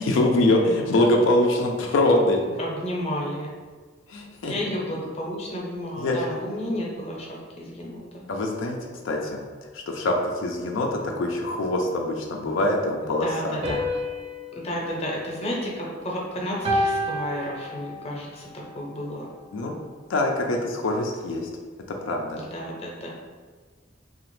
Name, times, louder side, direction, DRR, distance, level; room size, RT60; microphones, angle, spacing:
voice 1, 0.0-2.6 4.1-4.8 6.0-6.2 8.3-8.8 9.0-9.4 9.7-13.8 19.5-19.8 20.1-21.5 22.0-22.4, left 1 dB, 90° left, 1 dB, 0.4 m, -24 dB
voice 2, 2.6-3.5 4.4-7.3 7.6-8.2 13.0-13.8 14.6-19.3 22.5-23.1, equal, 35° left, -3 dB, 0.6 m, -32 dB
sound 1, 13.6-16.1 16.6-18.2, left 1 dB, 30° right, 0.5 m, -30 dB
2.9 x 2.4 x 3.0 m, 1.5 s
head